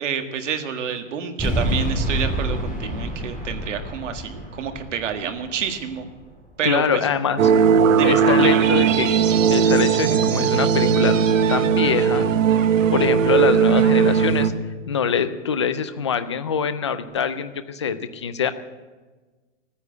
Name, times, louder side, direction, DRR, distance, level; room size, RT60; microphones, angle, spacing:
voice 1, 0.0-6.1 6.6-6.8 8.0-8.2 8.5-8.6, right 7 dB, 70° right, 6 dB, 1.9 m, -28 dB
sound 1, 1.4-6.6, equal, 5° right, 4.7 m, -28 dB
voice 2, 6.6-7.5 8.0-9.1 9.5-11.1 11.5-12.3 12.9-14.5 14.9-18.5, left 7 dB, 25° left, 11 dB, 0.4 m, -24 dB
sound 2, 7.4-14.5, right 7 dB, 90° right, 1.3 m, -18 dB
14.5 x 9.7 x 9.2 m, 1.3 s
hypercardioid pair, 170°, 38 cm